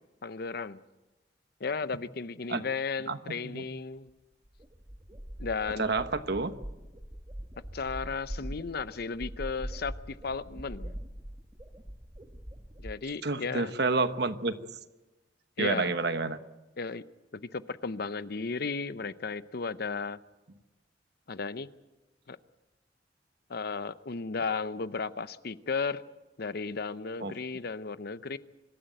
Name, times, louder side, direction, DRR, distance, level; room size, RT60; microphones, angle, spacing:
voice 1, 0.2-0.8 1.6-4.1 5.4-5.8 7.7-11.0 12.8-13.7 15.6-15.9 16.8-17.0 17.3-20.2 21.3-21.7 22.3-22.4 23.5-26.0 26.4-28.4, left 4 dB, 60° left, 14 dB, 0.7 m, -34 dB
voice 2, 3.1-3.6 5.8-6.5 13.2-14.6 15.6-16.4 27.2-27.4, right 3 dB, 65° right, 10 dB, 1.2 m, -29 dB
sound 1, 4.1-4.2 4.4-12.9, equal, 20° right, 1.3 m, -42 dB
25.0 x 13.0 x 9.1 m, 1.1 s
head